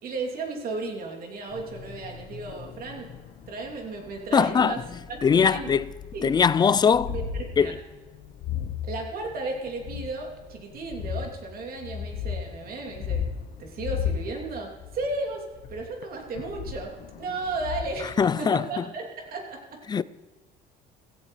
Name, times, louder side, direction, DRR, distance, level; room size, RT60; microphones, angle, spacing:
voice 1, 0.0-3.1 3.5-4.8 5.4-5.7 6.1-6.3 7.1-7.7 8.8-13.2 13.6-15.4 15.7-16.9 17.2-19.6, right 3 dB, 60° right, 3.0 m, -34 dB
sound 1, 1.5-18.3, left 7 dB, 70° left, 1.2 m, -36 dB
voice 2, 4.3-4.7 5.2-5.9 6.2-7.1 7.6-7.8 18.2-18.8 19.9-20.0, left 6 dB, 25° left, 0.3 m, -21 dB
16.5 x 16.0 x 3.3 m
cardioid pair, 110°, 17 cm